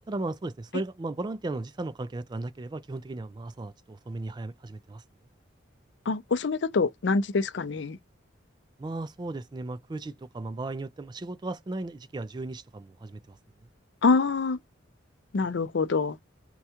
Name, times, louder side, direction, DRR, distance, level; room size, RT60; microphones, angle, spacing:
voice 1, 0.1-5.0 8.8-13.4, right 2 dB, 20° right, 0.3 m, -36 dB
voice 2, 6.1-8.0 14.0-14.6 15.3-16.2, left 4 dB, 60° left, 0.5 m, -25 dB
4.4 x 2.3 x 2.8 m
head